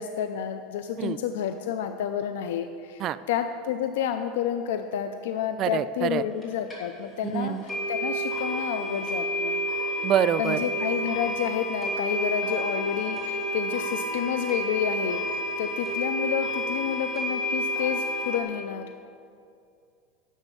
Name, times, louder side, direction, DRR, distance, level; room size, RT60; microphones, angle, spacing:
voice 1, 0.0-9.6 10.4-18.9, left 9 dB, 85° left, 8 dB, 0.5 m, -30 dB
voice 2, 5.6-6.2 7.3-7.6 10.0-10.6, right 10 dB, 40° right, 14 dB, 0.3 m, -25 dB
sound 1, 6.4-6.5 6.7-6.8 7.2-7.3 7.7-18.4, equal, 15° left, 2.9 m, -30 dB
11.0 x 7.2 x 6.8 m, 2.4 s
supercardioid pair, 140°, 0 cm